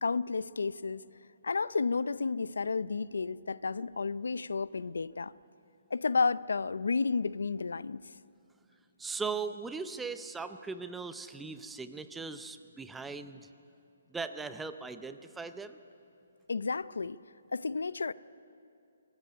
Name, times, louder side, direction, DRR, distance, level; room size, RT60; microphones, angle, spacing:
voice 1, 0.0-1.0 1.4-5.3 5.9-8.0 16.5-17.2 17.5-18.1, left 4 dB, 90° left, 18 dB, 0.5 m, -31 dB
voice 2, 9.0-13.5 14.1-15.8, right 4 dB, 5° right, 10 dB, 0.6 m, -39 dB
24.0 x 14.0 x 9.7 m, 2.6 s
hypercardioid pair, 165°, 0 cm